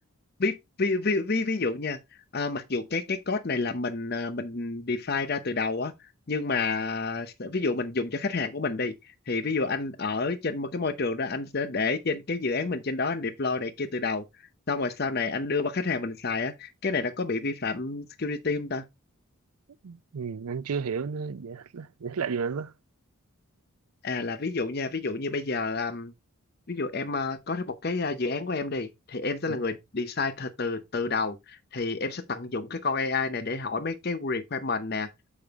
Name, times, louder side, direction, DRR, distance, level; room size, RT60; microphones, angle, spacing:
voice 1, 0.4-2.0 2.3-5.9 6.3-9.0 9.3-14.2 14.7-18.9 24.0-26.1 26.7-35.1, left 3 dB, 45° left, 0.7 m, -29 dB
voice 2, 19.8-22.7 29.5-29.6, right 6 dB, 90° right, 0.5 m, -32 dB
6.9 x 5.0 x 3.5 m
head